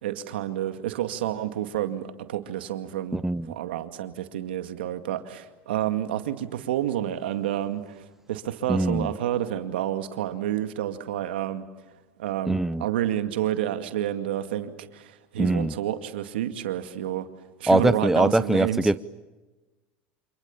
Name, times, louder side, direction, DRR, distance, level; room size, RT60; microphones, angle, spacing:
voice 1, 0.0-11.6 12.2-17.3 17.6-18.9, right 12 dB, 90° right, 2.2 m, -29 dB
voice 2, 3.1-3.5 8.7-9.1 12.5-12.8 15.4-15.7 17.7-19.0, right 2 dB, 5° right, 0.8 m, -22 dB
29.0 x 27.0 x 7.2 m
supercardioid pair, 100°, 5 cm